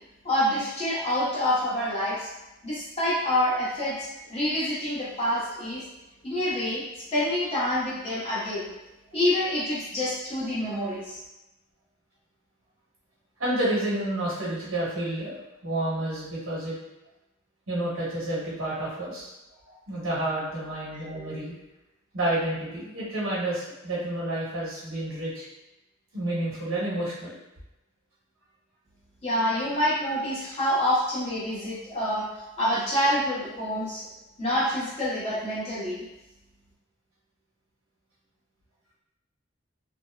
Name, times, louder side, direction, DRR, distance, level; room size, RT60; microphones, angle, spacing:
voice 1, 0.2-2.3 2.6-5.8 6.2-6.8 7.1-8.7 9.1-11.2 29.2-32.3 32.6-34.0 34.4-36.0, left 1 dB, 30° left, -9 dB, 0.9 m, -27 dB
voice 2, 13.4-15.4 15.6-16.7 17.7-19.3 19.7-21.6 22.1-25.5 26.1-27.4, right 1 dB, 85° right, -7 dB, 1.1 m, -30 dB
2.6 x 2.0 x 2.3 m, 0.95 s
head